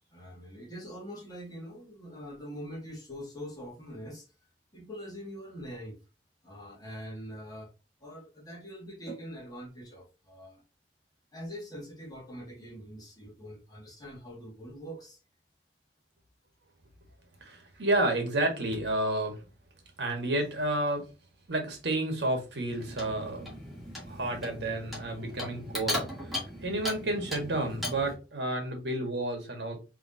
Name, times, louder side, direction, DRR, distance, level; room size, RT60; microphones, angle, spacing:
voice 1, 0.1-4.2 4.7-6.0 6.4-7.7 8.0-10.6 11.3-15.2, equal, 25° left, 2.0 m, -43 dB
voice 2, 17.4-19.4 20.0-21.0 21.5-23.5 24.1-29.8, right 1 dB, 75° right, 1.6 m, -31 dB
Clock, 22.7-28.2, left 1 dB, ahead, 2.1 m, -38 dB
4.9 x 3.4 x 2.7 m
head